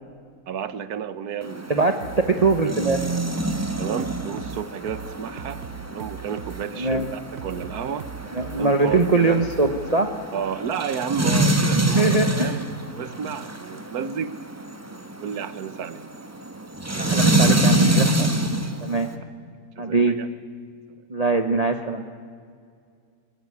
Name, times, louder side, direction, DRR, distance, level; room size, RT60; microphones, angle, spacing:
voice 1, 0.5-1.8 2.6-3.0 3.8-5.6 5.9-8.1 8.5-9.4 10.3-14.3 14.9-16.0 16.9-17.3 19.8-20.3, right 7 dB, 90° right, 13 dB, 1.6 m, -32 dB
sound 1, 1.4-19.1, right 1 dB, 10° right, 1.4 m, -26 dB
sound 2, 2.0-9.9, right 8 dB, 50° right, 1.1 m, -39 dB
voice 2, 2.3-3.0 6.8-7.1 8.3-10.1 11.7-12.5 17.0-18.3 18.8-19.1 19.8-20.2 21.1-22.1, right 3 dB, 30° right, 6 dB, 1.1 m, -22 dB
23.5 x 20.0 x 9.8 m, 2.2 s
omnidirectional pair, 1.6 m